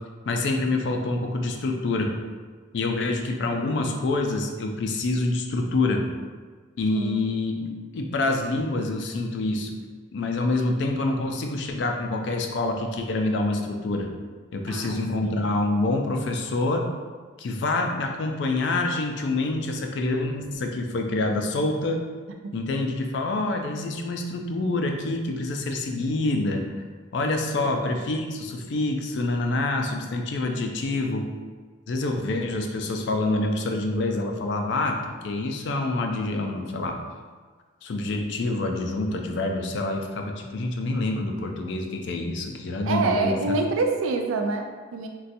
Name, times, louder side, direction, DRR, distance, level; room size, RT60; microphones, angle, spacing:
voice 1, 0.3-2.1 2.7-6.0 6.8-7.5 7.9-9.7 10.1-14.1 14.5-16.9 17.4-22.0 22.5-26.7 27.1-31.3 31.9-37.0 37.8-43.6, left 2 dB, 60° left, 3 dB, 0.4 m, -26 dB
voice 2, 14.7-15.5 22.4-22.5 27.6-27.8 42.9-45.1, right 3 dB, 85° right, 4 dB, 0.4 m, -27 dB
4.0 x 2.2 x 2.5 m, 1.5 s
head